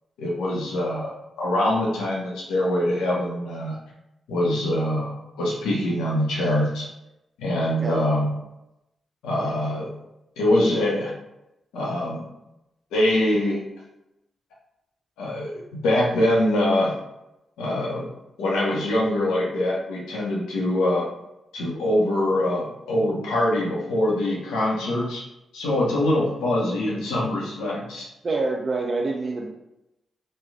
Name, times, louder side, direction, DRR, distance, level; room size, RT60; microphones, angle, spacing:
voice 1, 0.2-1.1 1.4-3.8 4.3-5.1 5.4-6.9 7.4-8.3 9.2-9.9 10.4-11.1 11.7-12.2 12.9-13.6 15.2-16.9 17.6-18.1 18.4-21.1 21.5-25.2 25.5-28.1, left 1 dB, 85° left, -4 dB, 0.9 m, -23 dB
voice 2, 7.6-8.0 28.2-29.5, right 3 dB, 50° right, -1 dB, 0.5 m, -26 dB
3.2 x 2.3 x 3.6 m, 0.89 s
supercardioid pair, 45°, 0 cm